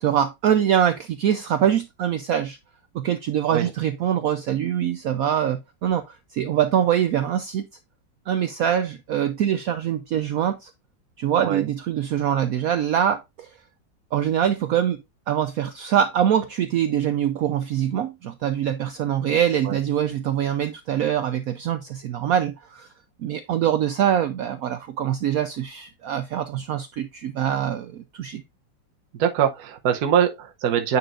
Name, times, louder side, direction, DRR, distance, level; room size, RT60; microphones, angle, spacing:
voice 1, 0.0-2.6 2.9-7.7 8.3-10.7 11.2-13.5 14.1-22.9 23.2-28.4, right 9 dB, 75° right, 0.8 m, -24 dB
voice 2, 29.2-31.0, right 8 dB, 60° right, 1.3 m, -22 dB
9.4 x 4.5 x 2.5 m
omnidirectional pair, 2.0 m